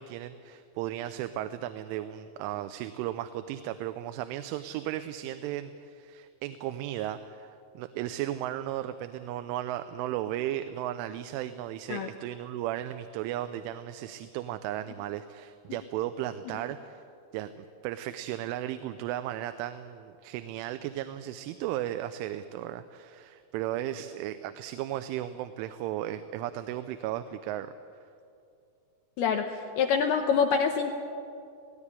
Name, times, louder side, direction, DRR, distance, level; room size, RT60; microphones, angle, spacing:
voice 1, 0.0-17.0 17.3-27.7, right 12 dB, 85° right, 11 dB, 3.1 m, -35 dB
voice 2, 29.2-30.9, left 6 dB, 80° left, 4 dB, 2.4 m, -26 dB
18.0 x 17.5 x 9.8 m, 2.5 s
omnidirectional pair, 5.5 m